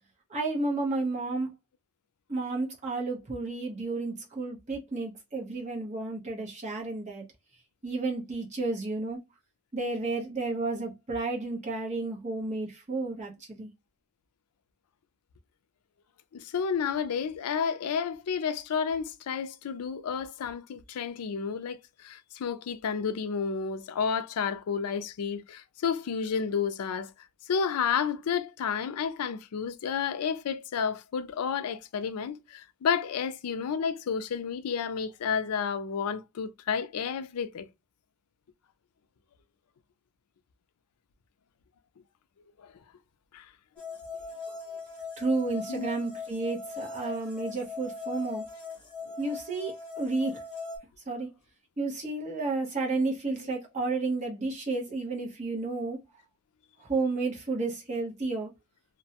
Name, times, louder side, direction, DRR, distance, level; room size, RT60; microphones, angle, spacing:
voice 1, 0.3-1.5 2.3-7.2 7.8-9.2 9.7-13.7 45.2-48.4 49.2-50.4 51.1-51.3 51.8-56.0 56.8-58.5, right 3 dB, 30° right, 0.8 m, -31 dB
voice 2, 16.3-27.1 27.5-37.7 42.6-42.7 43.3-43.5 44.5-44.6 45.7-45.9, left 6 dB, 90° left, 0.4 m, -31 dB
sound 1, 43.8-50.8, left 4 dB, 5° left, 0.9 m, -40 dB
2.5 x 2.1 x 2.8 m
head